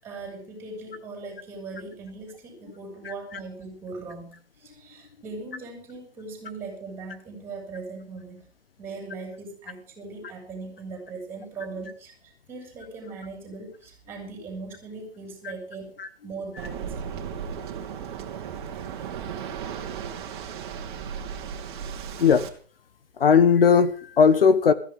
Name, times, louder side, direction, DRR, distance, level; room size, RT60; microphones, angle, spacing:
voice 1, 0.0-8.4 8.8-15.9 16.2-16.9, right 3 dB, 5° right, 1 dB, 6.5 m, -39 dB
Waves surf, 16.6-22.5, right 7 dB, 25° right, 2.8 m, -35 dB
voice 2, 23.2-24.7, left 6 dB, 60° left, 13 dB, 1.2 m, -17 dB
20.0 x 15.0 x 3.7 m, 0.43 s
hypercardioid pair, 165°, 32 cm